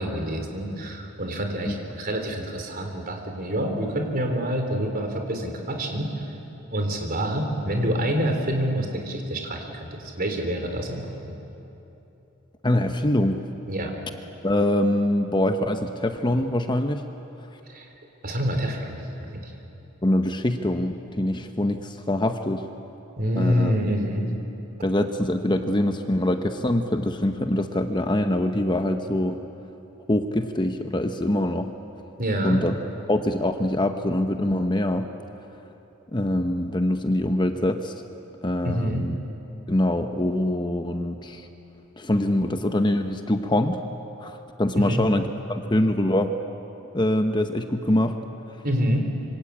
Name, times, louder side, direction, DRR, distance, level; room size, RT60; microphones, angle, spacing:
voice 1, 0.0-6.3 6.7-11.4 13.7-13.9 17.7-17.9 18.2-19.5 23.2-24.3 32.2-32.6 38.6-39.1 44.7-45.1 48.6-49.0, equal, 45° right, 3 dB, 3.8 m, -27 dB
voice 2, 12.6-13.4 14.4-17.0 20.0-22.7 23.4-23.7 24.8-29.4 30.1-31.7 32.4-32.8 33.1-35.1 36.1-37.9 38.4-39.2 39.7-41.5 42.0-43.8 44.2-46.3 46.9-48.2, left 1 dB, 20° left, 6 dB, 0.9 m, -24 dB
26.0 x 25.5 x 8.6 m, 3.0 s
head